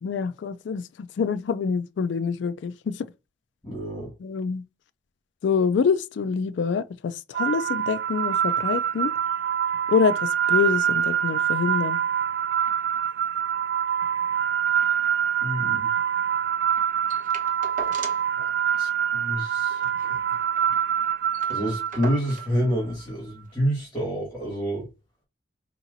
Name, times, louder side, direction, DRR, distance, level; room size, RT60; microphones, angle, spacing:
voice 1, 0.0-3.1 4.2-4.6 5.4-9.1 9.9-12.0, left 5 dB, 75° left, 0.3 m, -26 dB
voice 2, 3.6-4.1 15.4-15.9 18.4-18.5 18.8-19.8 20.1-20.2 21.5-24.9, equal, 15° left, 2.1 m, -28 dB
sound 1, 7.3-22.5, right 8 dB, 60° right, 0.3 m, -25 dB
sound 2, 17.1-18.4 18.7-18.8 19.1-19.3 19.7-20.7 21.0-21.1 21.3-22.6 23.5-23.6, right 3 dB, 45° right, 1.0 m, -40 dB
4.8 x 2.9 x 2.6 m
head